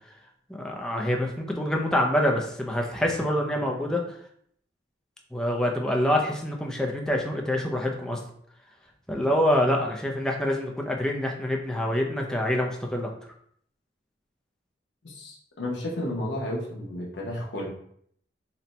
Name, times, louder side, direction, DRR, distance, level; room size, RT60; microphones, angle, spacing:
voice 1, 0.5-4.0 5.3-8.2 9.1-13.1, left 1 dB, 5° left, 0 dB, 0.4 m, -26 dB
voice 2, 15.0-17.7, left 1 dB, 70° left, -1 dB, 0.9 m, -32 dB
4.2 x 2.2 x 4.0 m, 0.65 s
head